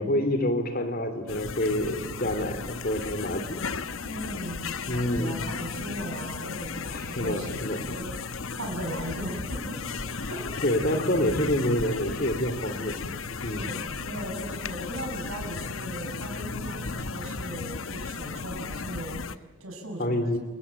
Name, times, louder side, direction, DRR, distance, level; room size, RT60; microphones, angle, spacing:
voice 1, 0.0-3.7 4.9-5.5 6.9-7.8 10.6-13.0 13.4-13.7 20.0-20.4, left 1 dB, 45° left, 9 dB, 3.2 m, -27 dB
sound 1, 1.3-19.4, left 4 dB, 75° left, 1.0 m, -35 dB
voice 2, 4.0-7.6 7.9-8.1 8.6-10.5 13.4-20.3, right 1 dB, 90° right, 2 dB, 6.7 m, -38 dB
28.5 x 22.0 x 8.9 m, 1.3 s
head